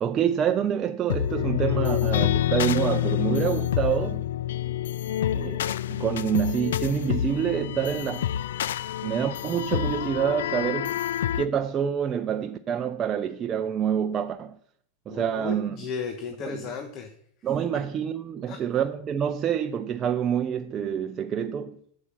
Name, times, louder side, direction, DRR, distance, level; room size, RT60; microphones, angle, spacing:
voice 1, 0.0-4.2 5.3-8.3 9.0-11.0 11.3-14.6 15.1-15.8 16.4-16.6 17.4-21.8, right 8 dB, 30° right, 0.6 m, -27 dB
sound 1, 1.1-11.5, left 12 dB, 75° left, 0.3 m, -27 dB
voice 2, 15.1-17.1 18.5-18.6, left 6 dB, 45° left, 1.2 m, -35 dB
8.1 x 7.5 x 6.2 m
hypercardioid pair, 100°, 0 cm